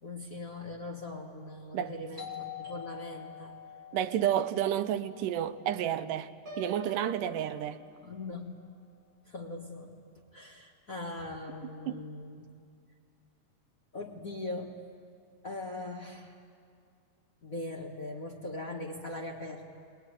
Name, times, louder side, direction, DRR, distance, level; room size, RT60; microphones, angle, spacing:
voice 1, 0.0-3.5 8.0-8.6 9.3-9.9 10.3-12.5 13.9-14.8 15.4-16.3 17.4-19.6, left 2 dB, 60° left, 0.8 m, -40 dB
Doorbell, 2.2-7.6, left 10 dB, 20° right, 3.8 m, -47 dB
voice 2, 3.9-7.8 11.9-12.0, right 10 dB, 80° right, 2.3 m, -31 dB
Piano, 6.5-8.4, left 1 dB, 40° right, 3.8 m, -46 dB
23.0 x 20.0 x 9.8 m
omnidirectional pair, 3.9 m